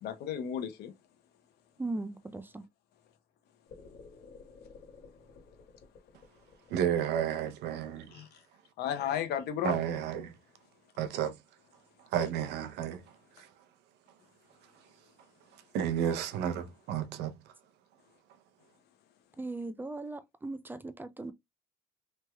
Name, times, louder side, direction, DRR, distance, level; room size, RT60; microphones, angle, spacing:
voice 1, 0.0-0.9 8.1-8.4 8.8-9.8, left 9 dB, 75° left, 0.9 m, -34 dB
voice 2, 1.8-2.6 19.4-21.3, right 2 dB, 10° right, 0.3 m, -38 dB
sound 1, 3.7-7.9, left 4 dB, 50° left, 1.5 m, -53 dB
voice 3, 6.7-8.2 9.6-10.3 11.0-11.3 12.1-13.0 13.4-13.5 15.7-17.3, right 9 dB, 80° right, 0.6 m, -32 dB
3.2 x 3.0 x 2.2 m
cardioid pair, 110°, 17 cm